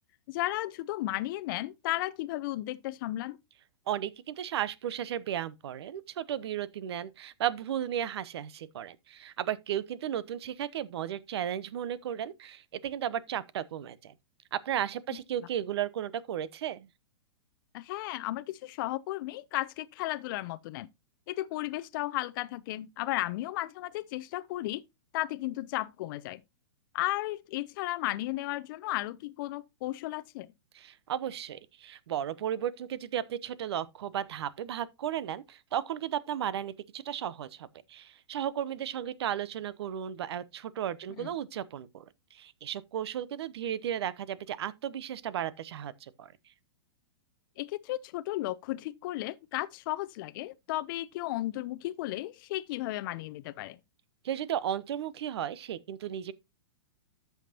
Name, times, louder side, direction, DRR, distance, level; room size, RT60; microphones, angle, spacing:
voice 1, 0.3-3.4 17.7-20.9 21.3-24.8 25.1-26.4 26.9-30.5 41.2-41.3 47.6-53.8, left 17 dB, 50° left, 0.6 m, -34 dB
voice 2, 3.9-14.1 14.5-16.9 30.7-42.0 42.3-46.3 54.2-56.3, right 10 dB, 65° right, 0.9 m, -34 dB
13.0 x 5.8 x 2.8 m
hypercardioid pair, 120°, 15 cm